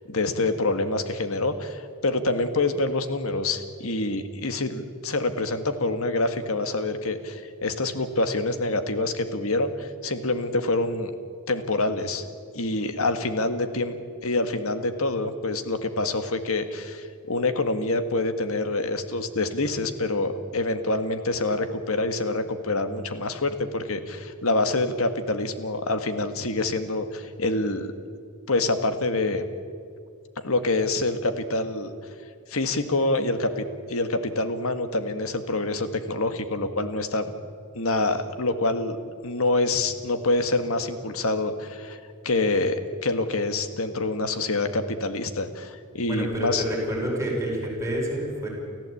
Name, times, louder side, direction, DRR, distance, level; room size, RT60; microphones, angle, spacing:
voice 1, 0.1-11.1 11.5-12.2 12.5-14.0 14.2-27.9 28.5-29.5 30.4-31.9 32.5-37.3 37.7-39.0 39.2-46.6, left 2 dB, 70° left, 9 dB, 1.8 m, -26 dB
voice 2, 46.1-48.5, right 1 dB, 15° right, -2 dB, 5.8 m, -28 dB
29.5 x 14.5 x 8.6 m, 2.2 s
head